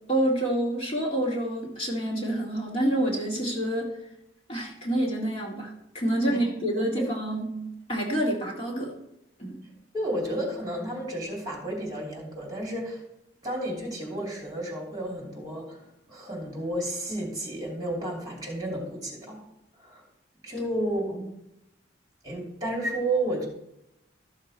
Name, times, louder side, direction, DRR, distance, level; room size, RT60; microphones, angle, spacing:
voice 1, 0.1-3.9 4.5-7.6 7.9-8.9 9.4-9.6 20.6-20.7, right 1 dB, 30° left, -3 dB, 2.0 m, -27 dB
voice 2, 9.9-13.0 13.4-15.8 16.1-19.4 19.7-20.0 20.4-21.3 22.2-23.4, right 1 dB, 20° right, -2 dB, 2.8 m, -32 dB
13.0 x 6.6 x 4.3 m, 0.82 s
head